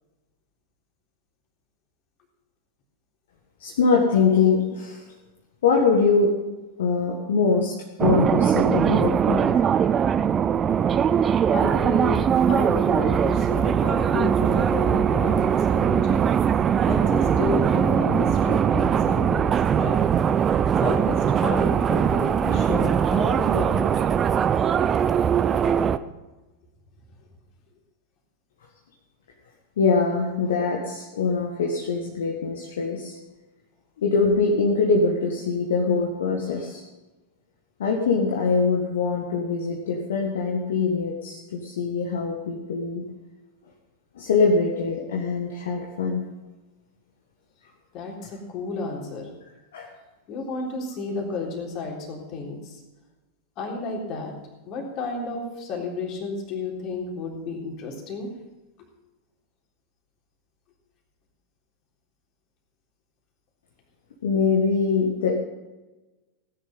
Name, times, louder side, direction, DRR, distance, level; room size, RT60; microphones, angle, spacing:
voice 1, 3.6-5.0 5.6-6.3 6.8-7.7 8.0-9.4 29.8-33.2 34.0-36.8 37.8-43.0 44.2-46.2 49.7-49.9 64.2-65.3, left 4 dB, 60° left, 0 dB, 1.7 m, -23 dB
sound 1, 8.0-26.0, right 8 dB, 25° right, 0.5 m, -21 dB
voice 2, 11.5-12.2 12.5-16.2 16.8-20.0 20.8-23.8 47.9-49.3 50.3-52.8 53.6-54.3 54.7-58.3, left 3 dB, 40° left, 0 dB, 3.7 m, -31 dB
17.0 x 10.0 x 5.5 m, 1.1 s
figure-of-eight pair, 90°, 0 cm